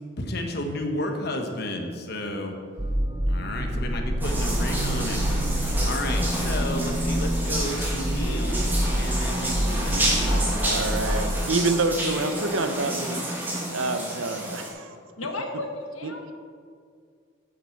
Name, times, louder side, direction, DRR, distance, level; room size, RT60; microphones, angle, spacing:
voice 1, 0.2-2.6 3.2-5.2 5.5-10.6, left 1 dB, 50° left, 3 dB, 1.1 m, -32 dB
sound 1, 2.8-11.3, equal, 25° right, 0.8 m, -26 dB
sound 2, 4.2-14.7, right 1 dB, 10° right, 1.5 m, -30 dB
voice 2, 10.6-15.0 16.0-16.1, right 3 dB, 70° right, 9 dB, 0.7 m, -28 dB
voice 3, 15.2-16.3, left 2 dB, 90° left, 3 dB, 1.4 m, -33 dB
9.2 x 6.0 x 6.5 m, 2.2 s
head